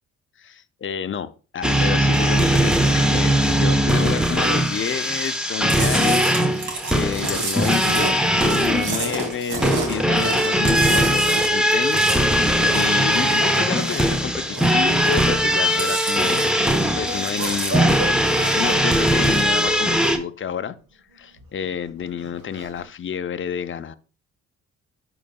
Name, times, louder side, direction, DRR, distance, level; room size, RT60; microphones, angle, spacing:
voice 1, 0.4-16.5 17.0-18.0 18.3-20.8 21.1-23.9, left 8 dB, 35° left, 0.6 m, -30 dB
sound 1, 1.6-20.2, equal, ahead, 0.9 m, -20 dB
Chewing mastication, 5.7-14.1 14.4-15.4 15.6-16.8 17.1-18.7 19.1-19.6, right 2 dB, 60° right, 2.1 m, -30 dB
sound 2, 16.4-20.2 21.1-22.8, right 1 dB, 80° right, 1.8 m, -34 dB
11.0 x 3.9 x 2.3 m
supercardioid pair, 55°, 33 cm